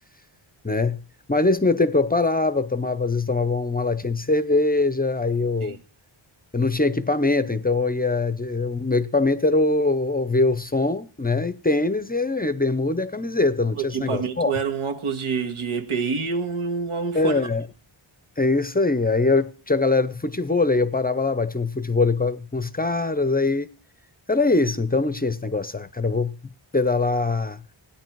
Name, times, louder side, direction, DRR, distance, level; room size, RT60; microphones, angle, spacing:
voice 1, 0.6-1.0 1.3-5.8 6.5-14.5 17.1-17.6 18.4-23.7 24.3-26.4 26.7-27.6, left 3 dB, 20° left, 0.6 m, -22 dB
voice 2, 13.7-17.5, right 5 dB, 85° right, 1.7 m, -27 dB
17.0 x 10.0 x 4.6 m
wide cardioid pair, 125°, 49 cm